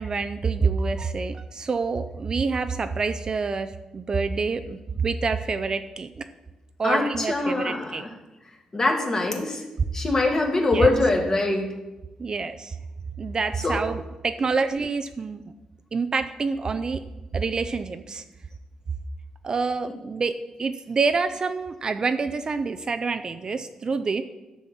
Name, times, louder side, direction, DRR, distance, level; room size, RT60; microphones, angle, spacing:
voice 1, 0.0-6.3 6.8-8.0 10.7-10.9 12.2-12.8 13.2-15.4 15.9-17.0 17.3-18.2 19.4-20.3 20.6-24.2, right 4 dB, 35° right, 9 dB, 0.4 m, -27 dB
voice 2, 6.8-8.1 8.7-9.6 9.9-11.7 13.5-13.8 14.4-14.5, left 2 dB, 30° left, 2 dB, 1.5 m, -23 dB
10.5 x 4.3 x 7.2 m, 1.1 s
wide cardioid pair, 135°, 2 cm